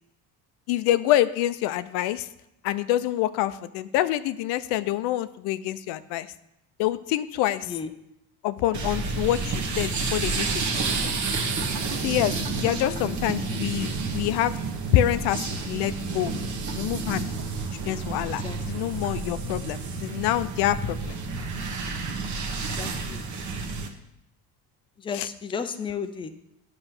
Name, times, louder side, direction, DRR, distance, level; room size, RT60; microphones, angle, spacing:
voice 1, 0.7-2.3 2.6-6.3 6.8-7.8 8.4-11.1 12.0-14.5 14.9-16.3 16.7-17.5 17.9-21.2 25.1-25.3, left 13 dB, 85° left, 14 dB, 0.5 m, -26 dB
sound 1, 8.7-23.9, right 4 dB, 50° right, 1.1 m, -30 dB
voice 2, 12.9-13.2 18.4-18.6 22.8-23.2 25.0-26.3, left 6 dB, 15° left, 9 dB, 0.4 m, -33 dB
9.8 x 3.3 x 5.8 m, 0.84 s
cardioid pair, 120°, 39 cm